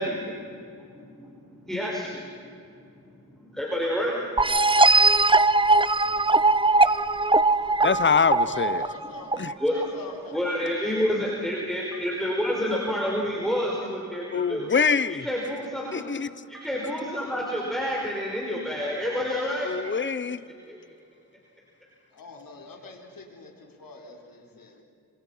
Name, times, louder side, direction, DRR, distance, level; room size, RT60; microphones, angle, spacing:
voice 1, 0.0-2.4 2.6-4.3 7.0-7.1 9.6-9.8 10.3-14.7 15.1-16.0 16.5-19.7 20.5-20.8, equal, ahead, 5.1 m, -29 dB
sound 1, 4.4-9.9, right 3 dB, 15° right, 0.7 m, -20 dB
voice 2, 7.8-8.8 9.4-9.5 14.3-15.2 15.9-16.3 19.6-20.4, left 5 dB, 35° left, 0.9 m, -24 dB
voice 3, 8.3-9.3 9.7-11.3 22.1-24.8, left 2 dB, 75° left, 4.3 m, -44 dB
Telephone, 11.9-15.3 16.5-18.0 18.6-20.2, right 4 dB, 55° right, 2.8 m, -48 dB
27.5 x 26.0 x 5.7 m
cardioid pair, 80°, 34 cm